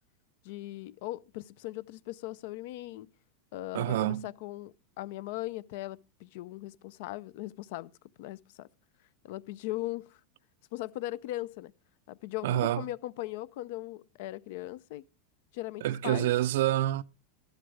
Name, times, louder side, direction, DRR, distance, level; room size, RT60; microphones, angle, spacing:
voice 1, 0.4-3.1 3.5-7.9 8.2-8.7 9.2-10.2 10.7-11.7 12.1-15.0 15.5-16.3, left 16 dB, 50° left, 0.4 m, -39 dB
voice 2, 3.7-4.3 12.4-12.8 15.8-17.0, right 13 dB, 65° right, 0.5 m, -27 dB
13.0 x 11.5 x 3.2 m
supercardioid pair, 175°, 0 cm